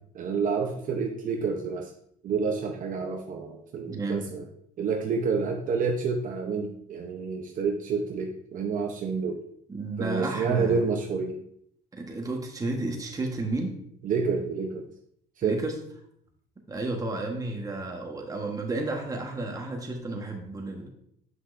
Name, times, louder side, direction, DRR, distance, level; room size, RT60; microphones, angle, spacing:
voice 1, 0.1-1.9 2.2-4.4 4.8-9.4 10.0-11.4 14.0-14.8 15.4-15.6, right 5 dB, 50° right, 2 dB, 0.8 m, -28 dB
voice 2, 3.9-4.3 9.7-10.9 11.9-13.7 15.4-15.8 16.7-20.9, right 2 dB, 20° right, 1 dB, 1.2 m, -32 dB
7.9 x 5.7 x 2.6 m, 0.69 s
cardioid pair, 110°, 17 cm